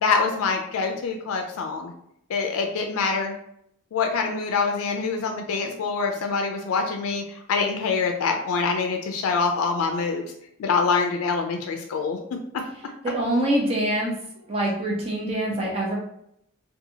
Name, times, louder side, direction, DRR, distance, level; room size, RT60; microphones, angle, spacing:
voice 1, 0.0-1.9 2.3-3.4 3.9-10.2 10.6-12.2, left 4 dB, 85° left, 4 dB, 0.3 m, -25 dB
voice 2, 13.0-14.1 14.5-16.0, right 1 dB, 30° right, -3 dB, 0.6 m, -24 dB
2.7 x 2.3 x 2.7 m, 0.74 s
head